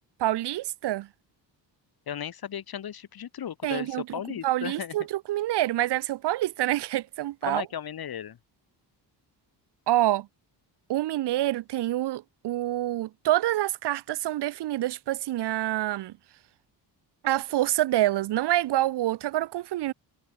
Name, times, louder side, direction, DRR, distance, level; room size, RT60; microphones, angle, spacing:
voice 1, 0.2-1.1 3.6-7.6 9.9-10.3 10.9-16.1 17.2-19.9, right 14 dB, 70° right, 0.8 m, -27 dB
voice 2, 2.1-4.9 7.5-8.4, left 9 dB, 55° left, 6.4 m, -35 dB
wide cardioid pair, 160°, 43 cm